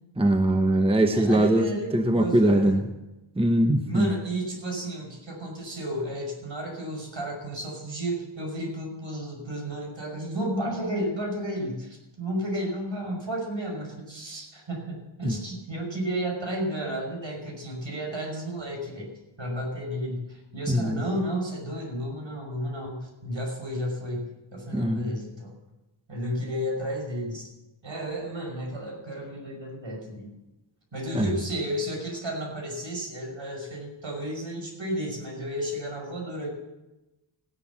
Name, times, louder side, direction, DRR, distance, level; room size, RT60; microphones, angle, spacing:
voice 1, 0.2-1.7 1.9-2.8 3.4-4.1 15.2-15.3 20.7-21.0 24.7-25.1 31.1-31.3, right 1 dB, 10° right, 6 dB, 1.0 m, -22 dB
voice 2, 1.1-2.8 3.9-19.1 19.4-25.5 26.1-27.5 27.8-30.3 30.9-36.5, equal, 65° right, 1 dB, 5.8 m, -32 dB
15.5 x 11.0 x 7.4 m, 1.0 s
wide cardioid pair, 85°, 49 cm